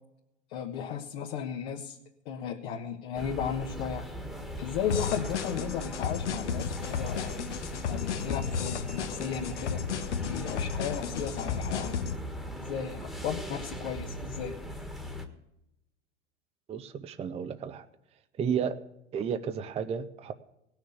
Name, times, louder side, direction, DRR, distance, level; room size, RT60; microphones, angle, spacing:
voice 1, 0.5-2.0 2.2-4.1 4.6-7.4 7.9-9.8 10.2-12.0 12.6-14.6, left 8 dB, 60° left, 1 dB, 1.4 m, -35 dB
sound 1, 3.2-15.3, equal, ahead, 1.5 m, -39 dB
sound 2, 4.9-12.2, left 7 dB, 80° left, 1.2 m, -34 dB
voice 2, 16.7-17.9 18.4-18.8 19.1-20.3, right 7 dB, 20° right, 10 dB, 0.6 m, -32 dB
17.5 x 6.5 x 8.1 m, 0.87 s
hypercardioid pair, 105°, 35 cm